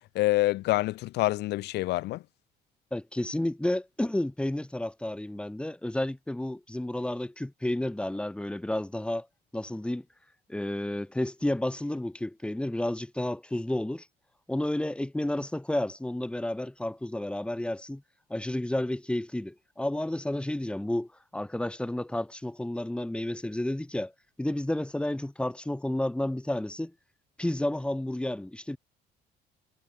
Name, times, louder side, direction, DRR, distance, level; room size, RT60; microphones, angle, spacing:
voice 1, 0.1-2.2, left 18 dB, 80° left, 2.6 m, -26 dB
voice 2, 2.9-9.3 9.5-10.0 10.5-14.1 14.5-18.0 18.3-24.1 24.4-26.9 27.4-28.8, left 1 dB, 5° left, 3.7 m, -31 dB
cardioid pair, 110°, 17 cm